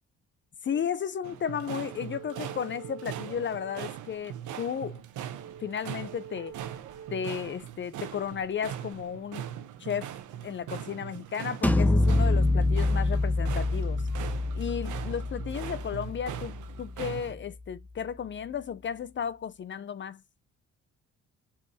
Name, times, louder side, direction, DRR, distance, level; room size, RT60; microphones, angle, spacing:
voice 1, 0.6-5.0 5.6-6.5 7.1-9.5 9.8-10.1 10.4-14.0 14.5-20.2, left 8 dB, 40° left, 0.5 m, -34 dB
sound 1, 0.7-0.9 1.7-3.9 5.2-7.3 9.7-17.5, right 7 dB, 55° right, 2.0 m, -50 dB
sound 2, 1.2-17.3, right 10 dB, 75° right, 0.9 m, -41 dB
sound 3, 11.6-17.3, left 2 dB, 5° left, 0.9 m, -26 dB
5.4 x 5.0 x 4.0 m
cardioid pair, 90°, 30 cm